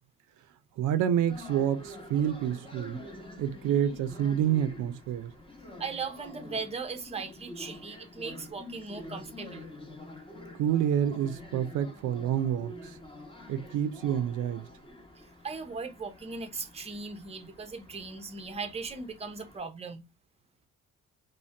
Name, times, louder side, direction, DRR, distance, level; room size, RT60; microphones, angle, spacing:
voice 1, 0.8-3.1 3.4-5.3 10.6-12.9 13.5-14.7, right 9 dB, 80° right, 0.5 m, -28 dB
sound 1, 1.3-19.6, left 1 dB, 20° left, 1.0 m, -47 dB
voice 2, 5.8-9.7 15.4-20.0, right 4 dB, 20° right, 0.6 m, -38 dB
2.6 x 2.1 x 3.3 m
cardioid pair, 90°, 30 cm